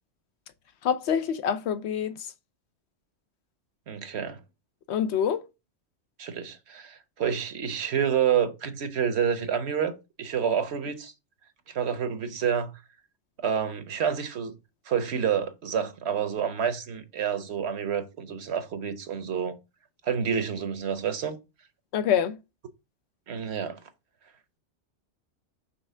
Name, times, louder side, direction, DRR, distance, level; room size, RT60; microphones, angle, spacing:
voice 1, 0.8-2.2 4.9-5.4 21.9-22.4, left 8 dB, 70° left, 0.8 m, -26 dB
voice 2, 3.9-4.4 6.2-9.9 10.2-11.1 11.7-12.7 13.4-14.5 14.9-19.6 20.0-21.4 23.3-23.8, right 7 dB, 65° right, 1.1 m, -28 dB
5.7 x 3.2 x 5.4 m
omnidirectional pair, 1.2 m